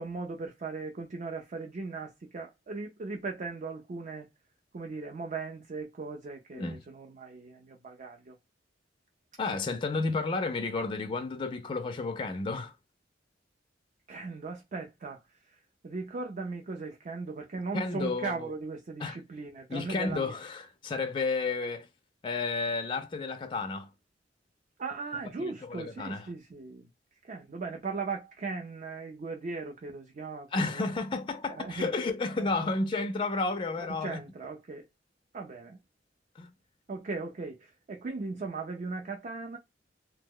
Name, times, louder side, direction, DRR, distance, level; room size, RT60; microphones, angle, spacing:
voice 1, 0.0-4.3 4.7-8.4 9.7-9.8 14.1-15.2 15.8-20.4 24.8-26.9 27.2-30.9 31.5-31.9 32.4-32.5 34.0-34.9 35.3-35.8 36.9-39.6, right 3 dB, 40° right, 0.4 m, -38 dB
voice 2, 9.4-12.7 17.7-18.5 19.0-19.2 19.7-21.9 22.2-23.9 25.4-26.3 30.5-34.2 36.4-36.5, left 3 dB, 30° left, 0.3 m, -32 dB
2.9 x 2.0 x 3.7 m
head